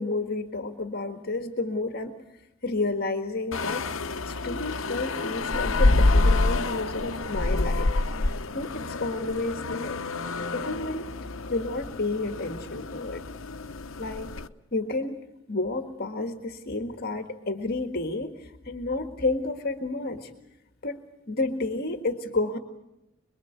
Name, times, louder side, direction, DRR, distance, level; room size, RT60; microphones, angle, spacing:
voice 1, 0.0-2.2 2.6-3.9 4.3-10.0 10.5-11.1 11.5-13.2 14.0-14.4 14.7-15.2 15.5-20.3 20.8-22.6, left 2 dB, 50° left, 6 dB, 1.8 m, -31 dB
sound 1, 3.5-14.5, left 2 dB, 80° left, 1.0 m, -27 dB
25.5 x 22.5 x 8.1 m, 0.91 s
head